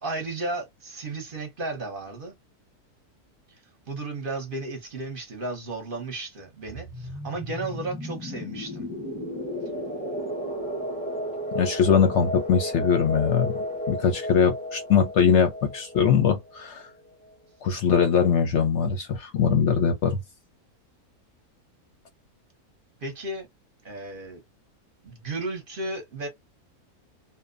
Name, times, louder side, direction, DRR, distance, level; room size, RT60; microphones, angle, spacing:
voice 1, 0.0-2.3 3.9-8.9 23.0-23.5 23.8-24.4 25.0-26.3, right 2 dB, 45° right, 0.8 m, -34 dB
sound 1, 6.7-17.1, equal, 10° left, 0.4 m, -34 dB
voice 2, 11.5-13.5 13.9-16.9 17.6-20.2, left 6 dB, 65° left, 0.8 m, -22 dB
2.6 x 2.1 x 2.4 m
omnidirectional pair, 1.6 m